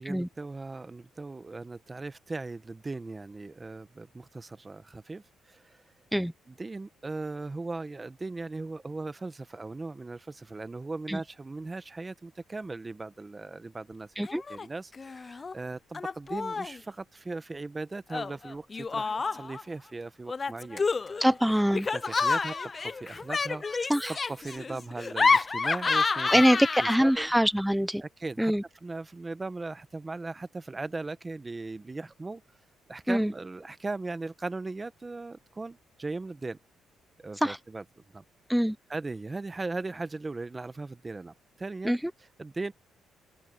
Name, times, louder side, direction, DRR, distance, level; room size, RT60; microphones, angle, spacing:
voice 1, 0.0-5.2 5.5-5.8 6.5-20.9 21.9-22.6 22.8-23.9 24.3-26.6 27.0-27.3 28.0-28.5 28.8-32.4 32.9-36.6 37.2-37.8 38.1-38.2 38.9-42.0 42.4-42.7, right 3 dB, 25° right, 1.2 m, -38 dB
Laughter, 14.2-14.7 14.9-15.5 15.9-16.8 18.1-19.6 20.3-27.2, left 4 dB, 30° left, 0.3 m, -29 dB
voice 2, 21.2-21.9 23.9-24.2 26.3-28.0 28.4-28.6 33.1-33.3 37.4-37.6 38.5-38.8 41.8-42.0, equal, ahead, 0.8 m, -24 dB
open air
cardioid pair, 90°, 0 cm